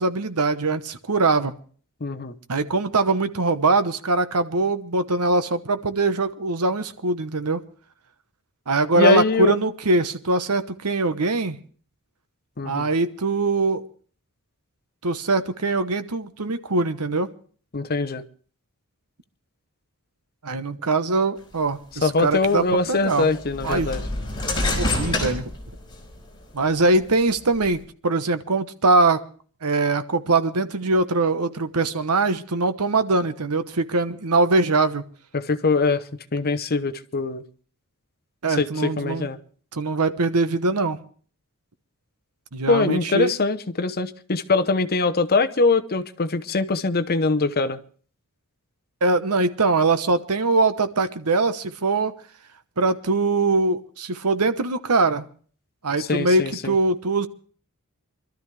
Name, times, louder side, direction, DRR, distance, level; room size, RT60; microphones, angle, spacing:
voice 1, 0.0-1.5 2.5-7.6 8.7-11.6 12.6-13.9 15.0-17.3 20.4-23.3 23.6-23.9 24.8-25.5 26.5-29.2 29.6-35.1 38.4-39.3 39.7-41.0 42.5-43.3 49.0-52.1 52.8-55.3 55.8-57.3, right 3 dB, 85° right, 11 dB, 1.1 m, -22 dB
voice 2, 2.0-2.3 8.9-9.5 12.6-12.9 17.7-18.2 22.0-24.0 35.3-36.0 36.3-37.4 38.5-39.4 42.7-47.8 56.0-56.7, left 3 dB, 45° left, 10 dB, 0.9 m, -22 dB
sound 1, 22.1-22.2 23.1-26.2 26.7-27.7, left 2 dB, 20° left, 4.0 m, -27 dB
24.5 x 13.0 x 3.3 m, 0.43 s
head